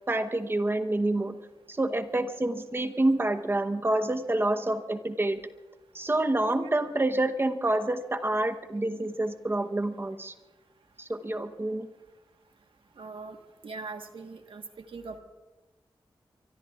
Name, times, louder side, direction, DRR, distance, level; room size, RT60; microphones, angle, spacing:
voice 1, 0.1-1.4 1.7-5.4 5.9-10.3 11.0-11.9, right 2 dB, 25° right, 7 dB, 0.9 m, -27 dB
voice 2, 13.0-13.4 13.6-15.2, right 4 dB, 75° right, 5 dB, 1.3 m, -41 dB
24.0 x 24.0 x 2.4 m, 1.2 s
wide cardioid pair, 115°, 9 cm